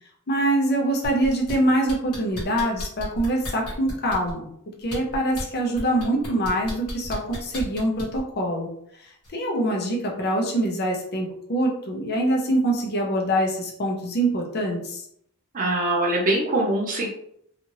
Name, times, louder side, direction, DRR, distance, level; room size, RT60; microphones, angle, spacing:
voice 1, 0.3-4.5 4.8-8.7 9.3-15.0, right 1 dB, 45° left, 0 dB, 0.6 m, -24 dB
sound 1, 1.0-1.5 1.9-4.3 4.8-5.4 5.8-8.2 9.2-9.3, equal, 90° left, 1.2 m, -34 dB
voice 2, 15.5-17.1, right 2 dB, 35° right, -3 dB, 0.6 m, -23 dB
2.7 x 2.5 x 3.0 m, 0.70 s
head